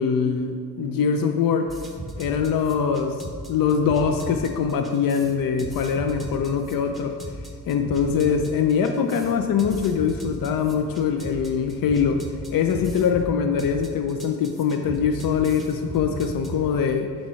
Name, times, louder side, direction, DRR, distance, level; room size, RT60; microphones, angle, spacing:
voice 1, 0.0-1.7 2.2-3.2 3.5-7.2 7.7-17.1, left 6 dB, 70° left, 6 dB, 0.6 m, -23 dB
sound 1, 1.7-16.6, right 1 dB, ahead, 1.1 m, -37 dB
7.3 x 4.4 x 6.3 m, 2.1 s
cardioid pair, 105°, 35 cm